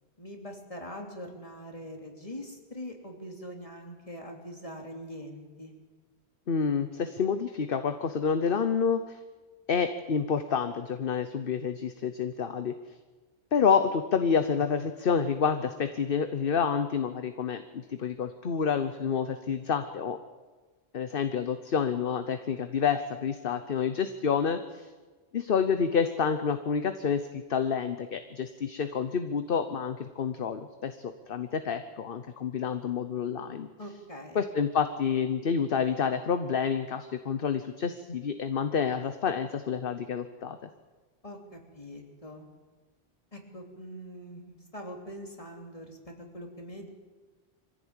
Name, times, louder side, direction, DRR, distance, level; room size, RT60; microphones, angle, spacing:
voice 1, 0.2-5.7 33.8-34.5 41.2-42.5 43.3-46.9, equal, 30° left, 2 dB, 3.3 m, -43 dB
voice 2, 6.5-9.2 9.7-12.7 13.5-20.2 20.9-24.9 25.3-33.7 34.3-40.6, left 6 dB, 55° left, 9 dB, 1.1 m, -28 dB
23.5 x 15.5 x 8.9 m, 1.3 s
omnidirectional pair, 1.1 m